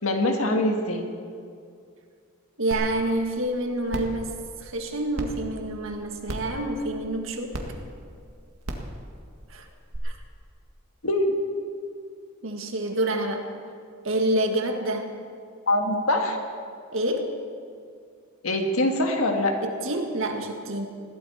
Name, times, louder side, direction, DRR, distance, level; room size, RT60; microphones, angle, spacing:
voice 1, 0.0-1.0 11.0-11.3 15.7-16.4 18.4-19.5, left 1 dB, 80° left, 3 dB, 1.7 m, -23 dB
voice 2, 2.6-7.6 9.5-9.7 10.0-10.2 12.4-13.5 14.0-15.1 16.9-17.3 19.6-20.9, right 1 dB, 65° right, 3 dB, 2.0 m, -28 dB
sound 1, 2.7-2.8 3.3-3.4 3.9-4.1 5.2-5.3 6.3-6.5 7.5-7.6 8.6-8.9 9.9-10.0, right 1 dB, 85° right, 1.9 m, -32 dB
21.0 x 15.5 x 4.4 m, 2.3 s
head